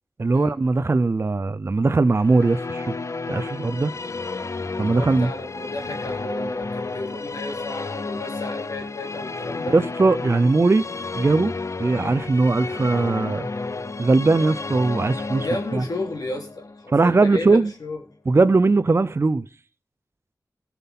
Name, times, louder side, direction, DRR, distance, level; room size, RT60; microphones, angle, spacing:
voice 1, 0.2-3.0 3.3-3.9 4.8-5.3 9.7-10.9 11.1-11.5 11.8-13.5 14.0-15.5 15.7-15.8 16.9-17.7 18.3-19.5, right 3 dB, 40° right, 0.5 m, -20 dB
Musical instrument, 2.1-17.5, left 3 dB, 50° left, 0.6 m, -32 dB
voice 2, 4.9-9.7 15.4-18.0, left 2 dB, 75° left, 3.2 m, -32 dB
16.5 x 5.9 x 5.6 m
wide cardioid pair, 85°, 6 cm